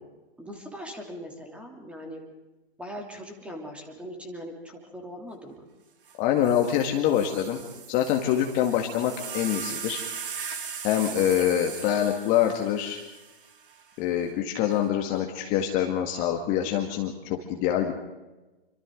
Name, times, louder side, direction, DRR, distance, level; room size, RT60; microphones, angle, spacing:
voice 1, 0.4-2.2 2.8-5.6, equal, 5° right, 2 dB, 3.0 m, -40 dB
sound 1, 6.1-6.2 6.4-13.8 14.7-15.2, right 6 dB, 60° right, 3.2 m, -39 dB
voice 2, 6.2-7.6 7.9-10.0 10.8-13.0 14.0-17.9, left 10 dB, 25° left, 3 dB, 1.9 m, -25 dB
27.5 x 25.0 x 3.9 m, 1.1 s
hypercardioid pair, 135°, 30 cm